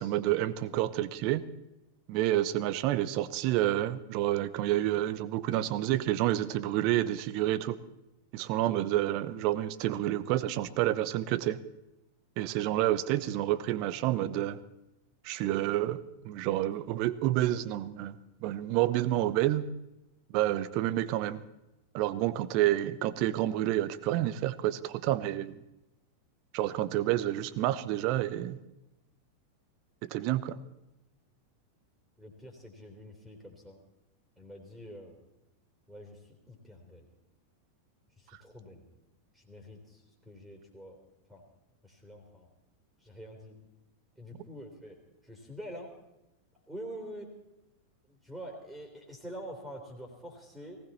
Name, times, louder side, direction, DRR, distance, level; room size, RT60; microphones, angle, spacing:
voice 1, 0.0-1.4 2.1-7.8 8.3-11.6 12.4-14.6 15.2-18.1 18.4-19.6 20.3-21.4 21.9-25.6 26.5-28.6 30.0-30.6, right 14 dB, 45° right, 15 dB, 0.9 m, -29 dB
voice 2, 32.2-33.8 34.4-35.1 35.9-37.1 38.2-38.8 39.3-41.0 41.3-41.4 41.8-42.5 43.0-43.6 44.2-45.0 45.2-45.9 46.7-47.3 48.1-50.8, equal, 5° right, 3 dB, 3.4 m, -46 dB
19.0 x 17.0 x 4.3 m, 0.91 s
figure-of-eight pair, 90°, 0 cm